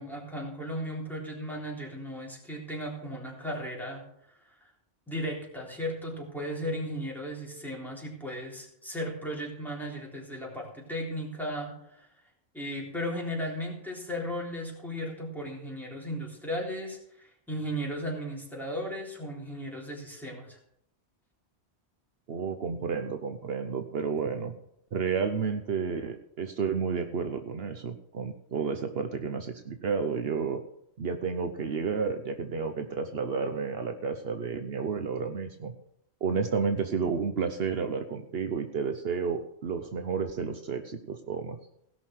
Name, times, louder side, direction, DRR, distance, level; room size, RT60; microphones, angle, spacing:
voice 1, 0.0-4.0 4.5-4.7 5.1-12.1 12.5-20.6, equal, ahead, -2 dB, 3.6 m, -36 dB
voice 2, 22.3-24.5 24.9-30.6 31.0-35.7 36.2-41.6, right 5 dB, 65° right, 7 dB, 1.0 m, -31 dB
17.0 x 6.3 x 6.3 m, 0.73 s
omnidirectional pair, 1.1 m